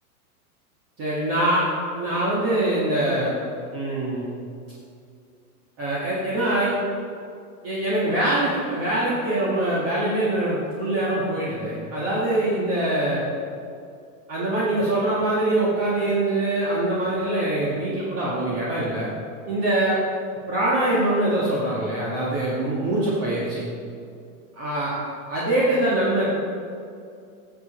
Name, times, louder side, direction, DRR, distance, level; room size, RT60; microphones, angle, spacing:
voice 1, 1.0-1.7 1.9-3.3 3.7-4.3 5.8-6.8 7.6-13.2 14.3-19.1 19.5-20.0 20.5-23.7 24.6-26.3, right 1 dB, 30° right, -7 dB, 2.0 m, -23 dB
12.0 x 7.5 x 4.4 m, 2.4 s
hypercardioid pair, 140°, 46 cm